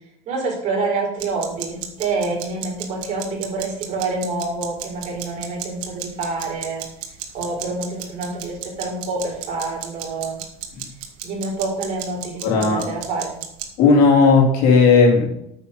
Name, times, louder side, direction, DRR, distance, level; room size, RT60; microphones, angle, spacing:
voice 1, 0.3-6.8 7.3-10.4 11.2-13.4, right 3 dB, 45° right, -1 dB, 4.4 m, -27 dB
sound 1, 1.2-13.7, right 11 dB, 85° right, 1.8 m, -34 dB
voice 2, 12.4-12.9 13.8-15.3, left 4 dB, 70° left, -1 dB, 3.5 m, -14 dB
9.2 x 6.7 x 5.3 m, 0.79 s
cardioid pair, 145°, 16 cm